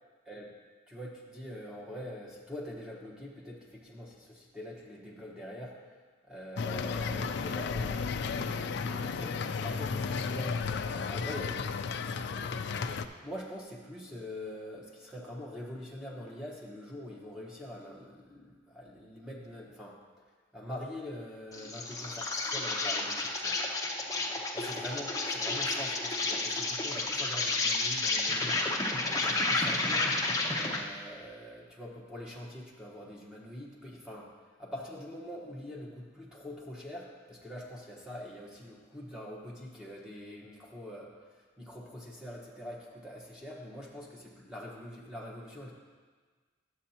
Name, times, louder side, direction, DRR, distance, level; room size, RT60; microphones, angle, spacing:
voice 1, 0.9-6.0 6.3-12.2 13.2-20.0 20.5-23.6 24.5-28.6 29.0-30.2 30.4-34.3 34.6-45.7, left 1 dB, 5° right, -4 dB, 1.2 m, -44 dB
sound 1, 6.6-13.0, left 5 dB, 60° left, 0.3 m, -33 dB
Insect, 21.5-30.9, left 2 dB, 20° left, 0.7 m, -31 dB
11.0 x 7.8 x 2.9 m, 1.5 s
head